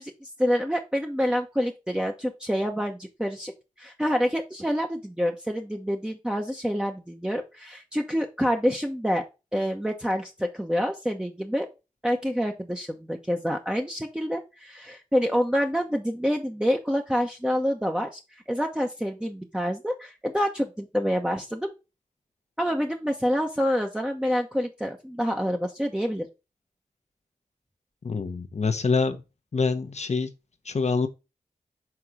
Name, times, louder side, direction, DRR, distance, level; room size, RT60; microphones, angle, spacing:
voice 1, 0.0-3.5 3.8-9.2 9.5-11.7 12.0-18.2 18.5-21.7 22.6-26.3, equal, 5° right, 1.0 m, -27 dB
voice 2, 28.0-29.2 29.5-30.3 30.6-31.1, left 4 dB, 55° left, 1.0 m, -25 dB
5.9 x 3.8 x 4.8 m
cardioid pair, 40°, 14 cm